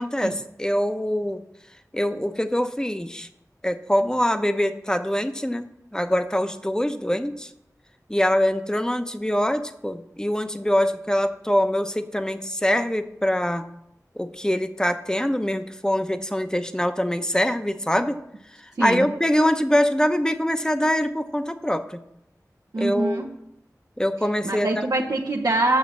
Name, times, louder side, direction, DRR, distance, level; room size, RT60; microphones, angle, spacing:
voice 1, 0.0-1.4 1.9-3.3 3.6-7.5 8.1-13.6 14.2-18.2 18.8-22.0 22.8-23.2 24.0-24.7, equal, 10° left, 9 dB, 0.8 m, -24 dB
voice 2, 22.7-23.3 24.4-25.8, right 2 dB, 90° right, 0 dB, 0.8 m, -24 dB
7.3 x 6.5 x 7.3 m, 0.81 s
wide cardioid pair, 40°, 6 cm